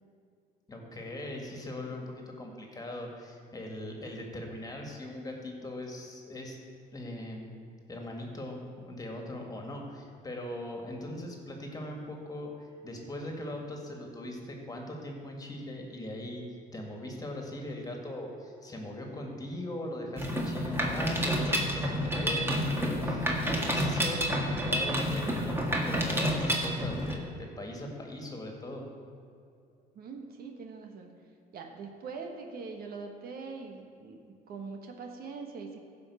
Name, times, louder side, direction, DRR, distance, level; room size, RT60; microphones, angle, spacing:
voice 1, 0.7-6.6 6.9-7.4 7.9-12.5 12.8-16.5 16.7-23.3 23.6-28.8, left 1 dB, 20° left, 1 dB, 2.1 m, -40 dB
Mechanisms, 20.2-27.1, equal, 15° right, 1.7 m, -29 dB
voice 2, 29.9-31.1 31.5-34.2 34.5-35.8, right 4 dB, 60° right, 3 dB, 1.5 m, -42 dB
15.5 x 5.4 x 7.1 m, 2.4 s
cardioid pair, 110°, 17 cm